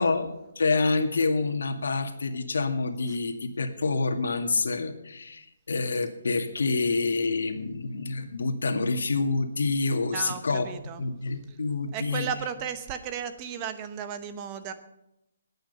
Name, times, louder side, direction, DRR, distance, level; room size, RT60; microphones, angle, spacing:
voice 1, 0.0-10.7 11.0-12.3, left 3 dB, 75° left, 6 dB, 2.0 m, -27 dB
voice 2, 10.1-11.0 11.5-11.6 11.9-14.7, right 8 dB, 15° right, 10 dB, 0.9 m, -35 dB
20.0 x 9.1 x 5.5 m, 0.85 s
hypercardioid pair, 175°, 0 cm